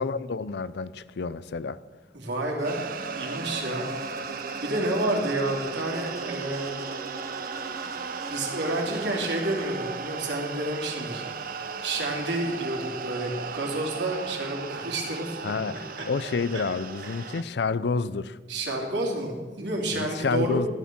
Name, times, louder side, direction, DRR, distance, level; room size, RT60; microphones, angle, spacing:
voice 1, 0.0-1.8 15.4-18.4 19.9-20.7, left 4 dB, 70° left, 0.5 m, -29 dB
voice 2, 2.1-2.8 3.1-3.9 4.1-4.3 4.6-6.8 8.3-11.2 11.8-16.0 16.5-16.6 17.0-17.4 18.5-20.7, right 1 dB, 85° right, 3.0 m, -30 dB
Insect, 2.3-10.5, right 2 dB, 20° right, 0.7 m, -44 dB
sound 1, 2.6-17.4, right 5 dB, 55° right, 0.7 m, -36 dB
14.0 x 9.5 x 6.0 m
head